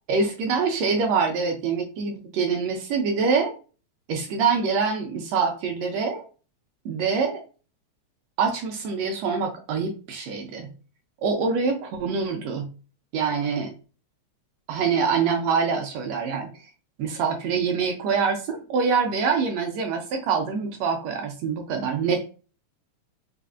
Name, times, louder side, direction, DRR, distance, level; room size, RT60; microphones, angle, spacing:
voice 1, 0.1-3.5 4.1-6.2 6.8-7.4 8.4-10.7 11.2-12.7 13.1-13.7 14.7-16.5 17.0-22.4, right 5 dB, 75° right, 4 dB, 1.6 m, -25 dB
4.8 x 2.5 x 2.4 m, 0.35 s
omnidirectional pair, 3.3 m